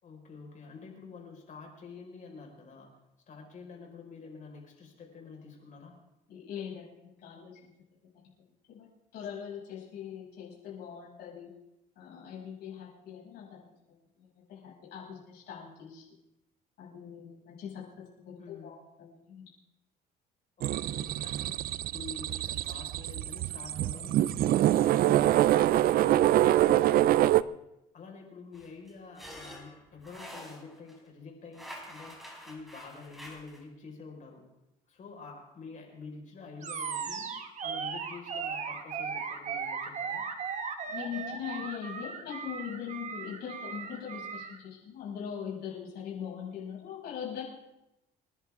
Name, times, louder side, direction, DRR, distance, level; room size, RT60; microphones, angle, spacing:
voice 1, 0.0-2.9 3.3-5.9 18.4-18.8 20.6-21.6 21.9-24.8 26.8-27.5 27.9-34.5 34.9-37.3 37.6-40.2, left 4 dB, 50° left, 1 dB, 5.1 m, -48 dB
voice 2, 6.3-7.7 8.7-11.5 12.0-13.6 14.2-16.1 16.8-19.4 25.0-25.5 40.9-47.4, left 8 dB, 75° left, -5 dB, 7.1 m, -41 dB
sound 1, 20.6-27.4, right 13 dB, 60° right, 0.5 m, -25 dB
sound 2, 28.5-31.0 31.5-33.6, equal, ahead, 4.5 m, -47 dB
Animal, 36.6-44.6, right 6 dB, 45° right, 1.6 m, -37 dB
29.5 x 11.0 x 3.7 m, 0.91 s
cardioid pair, 110°, 17 cm